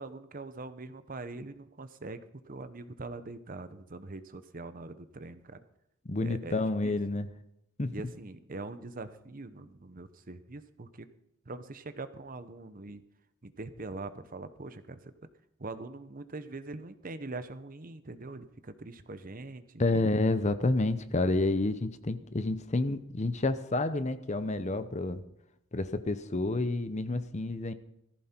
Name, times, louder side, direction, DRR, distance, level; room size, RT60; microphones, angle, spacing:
voice 1, 0.0-5.6 6.2-7.0 7.9-11.1 11.5-13.0 13.4-15.1 15.6-19.8, right 3 dB, 40° right, 11 dB, 0.9 m, -43 dB
voice 2, 6.1-7.3 7.8-7.9 19.8-25.2 25.7-27.7, left 2 dB, 35° left, 12 dB, 0.8 m, -29 dB
17.5 x 14.5 x 4.5 m, 0.80 s
head